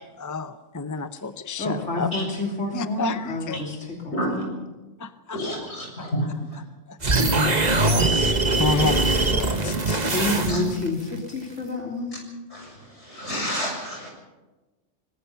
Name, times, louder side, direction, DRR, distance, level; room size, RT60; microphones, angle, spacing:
voice 1, 0.2-2.1 2.7-3.7 4.1-4.3 5.0-5.4 6.0-6.1 6.9-7.0 8.6-10.1, left 4 dB, 20° left, 10 dB, 0.7 m, -30 dB
voice 2, 1.6-4.5 10.1-12.2, left 2 dB, 85° left, 0 dB, 3.6 m, -29 dB
voice 3, 4.1-4.4 5.3-6.3 10.5-10.6 12.5-14.1, equal, 70° left, 0 dB, 7.5 m, -29 dB
sound 1, 7.0-10.9, right 2 dB, 35° right, 1.5 m, -22 dB
24.5 x 20.0 x 5.8 m, 1.1 s
omnidirectional pair, 1.2 m